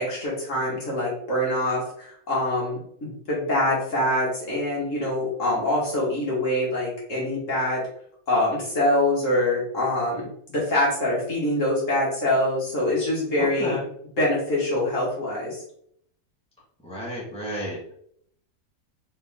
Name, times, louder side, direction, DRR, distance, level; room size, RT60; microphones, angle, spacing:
voice 1, 0.0-7.8 8.3-13.8 14.2-15.6, left 1 dB, 55° left, -5 dB, 2.0 m, -24 dB
voice 2, 13.4-13.9 16.8-17.8, equal, 5° left, -6 dB, 1.6 m, -31 dB
3.9 x 3.6 x 3.6 m, 0.67 s
omnidirectional pair, 1.6 m